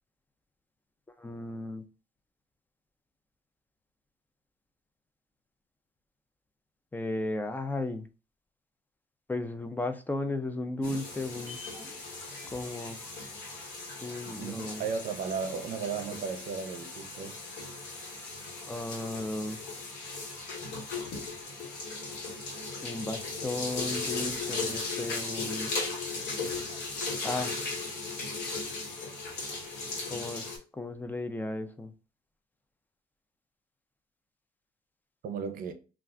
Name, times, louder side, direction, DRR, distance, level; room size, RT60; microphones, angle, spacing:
voice 1, 1.2-1.8 6.9-8.1 9.3-11.6 12.5-13.0 14.0-14.9 18.7-19.6 22.8-25.7 27.2-27.7 30.1-30.5 30.7-31.9, left 2 dB, 10° left, 0.4 m, -35 dB
sound 1, 10.7-15.2 15.5-15.6, left 2 dB, 10° right, 0.7 m, -52 dB
sound 2, 10.8-30.6, left 3 dB, 80° left, 1.2 m, -37 dB
voice 2, 14.3-17.4 35.2-35.7, right 6 dB, 55° right, 0.6 m, -35 dB
2.4 x 2.4 x 3.2 m
cardioid pair, 110°, 17 cm